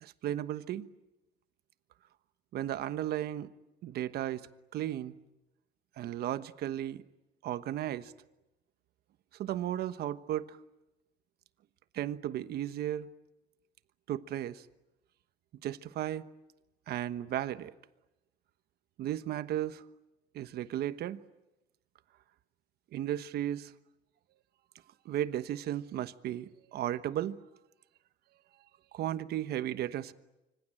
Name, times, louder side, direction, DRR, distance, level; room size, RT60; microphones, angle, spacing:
voice 1, 0.0-0.9 2.5-3.5 3.8-4.5 4.7-5.1 6.0-7.0 7.4-8.1 9.4-10.6 11.9-13.1 14.1-14.7 15.6-16.3 16.9-17.7 19.0-19.8 20.3-21.2 22.9-23.7 25.0-27.4 28.9-30.1, right 12 dB, 70° right, 1.2 m, -35 dB
25.5 x 25.0 x 9.0 m
cardioid pair, 110°, 17 cm